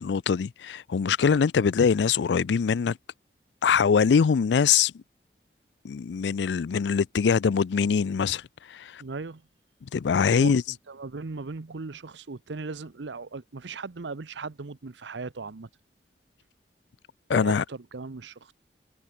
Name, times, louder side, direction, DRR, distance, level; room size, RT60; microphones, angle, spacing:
voice 1, 0.0-3.0 3.6-5.0 5.8-8.4 8.7-9.0 9.8-10.6 17.3-17.6, left 6 dB, 80° left, 0.4 m, -23 dB
voice 2, 9.0-9.5 10.3-15.7 17.3-18.5, right 4 dB, 85° right, 0.8 m, -38 dB
head